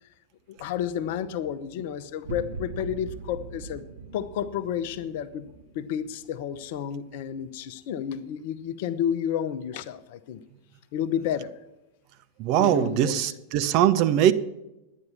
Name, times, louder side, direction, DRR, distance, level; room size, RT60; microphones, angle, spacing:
voice 1, 0.5-3.8 4.1-5.5 5.7-10.4 10.9-11.5 12.6-13.3, left 9 dB, 50° left, 0.7 m, -31 dB
sound 1, 0.6-7.4, right 4 dB, 60° right, 1.3 m, -43 dB
voice 2, 12.4-14.3, right 11 dB, 40° right, 0.7 m, -21 dB
11.0 x 9.2 x 7.0 m
figure-of-eight pair, 90°, 0 cm